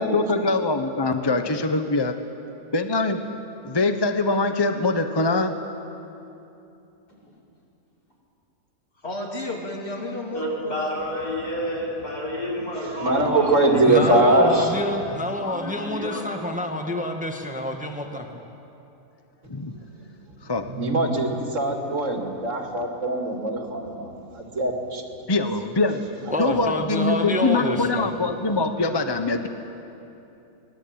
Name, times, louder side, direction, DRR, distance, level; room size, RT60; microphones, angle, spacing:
voice 1, 0.0-2.1 2.7-3.2 3.6-5.5 19.5-19.7 20.4-20.7 25.3-29.5, left 3 dB, 20° left, 7 dB, 0.8 m, -23 dB
voice 2, 1.1-1.5 9.0-11.0, left 1 dB, 40° left, 0 dB, 3.2 m, -33 dB
voice 3, 10.3-16.4, left 1 dB, 90° left, -4 dB, 6.5 m, -31 dB
voice 4, 13.0-14.8 15.0-15.1 19.6-19.8 20.7-25.0, right 2 dB, 55° right, 3 dB, 2.7 m, -22 dB
voice 5, 13.9-18.3 26.3-28.1, left 1 dB, 5° right, 4 dB, 1.5 m, -27 dB
24.0 x 20.0 x 8.8 m, 2.8 s
omnidirectional pair, 1.6 m